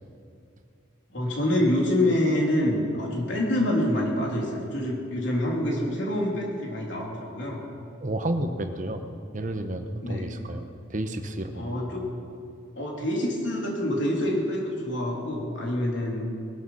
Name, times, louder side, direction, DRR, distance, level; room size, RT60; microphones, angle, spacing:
voice 1, 1.1-7.6 10.0-10.3 11.5-12.1 12.7-16.2, left 1 dB, 75° left, -2 dB, 3.4 m, -26 dB
voice 2, 8.0-9.0 9.3-10.6 10.9-11.8, right 1 dB, 40° right, 7 dB, 1.1 m, -31 dB
20.0 x 12.5 x 5.7 m, 2.4 s
head